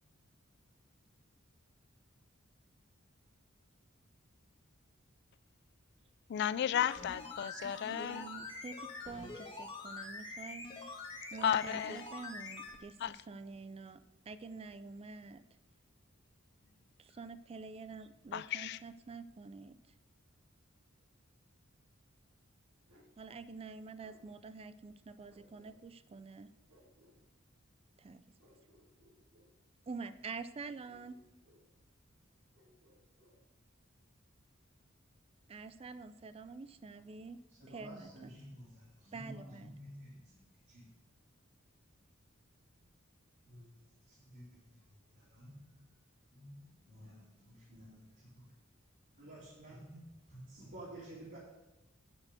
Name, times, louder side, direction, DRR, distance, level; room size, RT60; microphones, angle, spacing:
voice 1, 6.3-8.3 11.4-12.0 13.0-13.2 18.3-18.8, left 9 dB, 55° left, 18 dB, 0.3 m, -34 dB
sound 1, 6.7-12.8 13.0-13.1, left 3 dB, 25° left, 1.4 m, -45 dB
voice 2, 7.9-10.6 11.3-15.4 17.0-19.8 23.2-26.5 28.0-28.2 29.9-31.2 35.5-37.4 37.7-38.3 39.1-39.8, right 4 dB, 30° right, 13 dB, 0.4 m, -47 dB
Bark, 22.9-23.2 24.0-24.3 25.3-26.0 26.7-27.2 28.4-29.5 30.8-31.7 32.5-33.4, equal, 75° right, 2.1 m, -66 dB
voice 3, 37.6-40.9 43.5-43.7 44.1-45.8 46.3-48.5 49.1-51.4, right 1 dB, 50° right, -7 dB, 2.4 m, -52 dB
9.6 x 4.5 x 6.5 m, 0.96 s
head